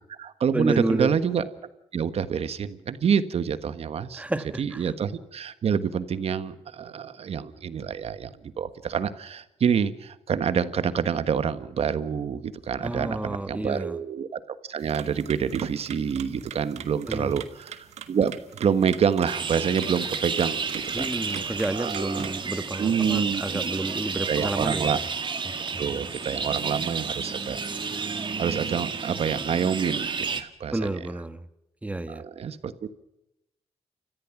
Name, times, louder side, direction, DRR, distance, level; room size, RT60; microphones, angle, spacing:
voice 1, 0.0-1.4 1.9-4.2 4.6-14.4 14.7-21.5 21.7-22.3 22.8-25.0 25.8-31.0 32.1-32.9, right 7 dB, 70° right, 1.4 m, -27 dB
voice 2, 0.5-1.2 4.2-4.8 12.8-14.0 17.1-17.4 20.9-25.0 25.7-25.9 30.7-31.4 31.8-32.2, right 1 dB, 10° right, 1.6 m, -30 dB
sound 1, 14.8-22.5, right 9 dB, 90° right, 1.5 m, -43 dB
sound 2, 19.3-30.4, right 5 dB, 45° right, 2.0 m, -31 dB
30.0 x 14.5 x 6.0 m
cardioid pair, 80°, 11 cm